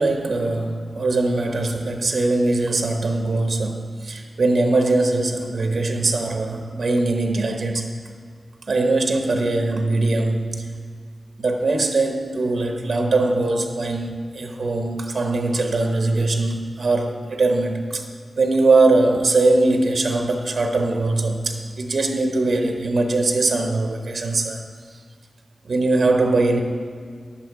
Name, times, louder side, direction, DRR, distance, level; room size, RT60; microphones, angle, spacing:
voice 1, 0.0-7.9 8.7-10.7 11.4-18.0 18.4-24.6 25.6-26.6, right 2 dB, 75° right, 4 dB, 0.9 m, -21 dB
10.5 x 8.7 x 4.7 m, 2.1 s
cardioid pair, 45°, 0 cm